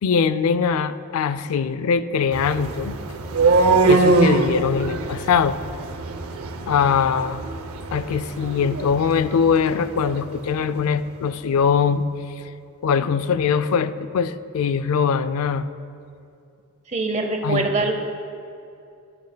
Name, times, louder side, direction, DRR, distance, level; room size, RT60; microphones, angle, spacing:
voice 1, 0.0-3.0 3.8-5.6 6.7-7.4 7.9-12.0 12.8-15.7 17.4-17.7, left 6 dB, 85° left, 14 dB, 0.4 m, -22 dB
sound 1, 2.3-10.3, right 3 dB, 85° right, 0.6 m, -23 dB
voice 2, 16.9-17.9, right 3 dB, 30° right, 5 dB, 0.7 m, -23 dB
13.5 x 9.2 x 2.2 m, 2.6 s
head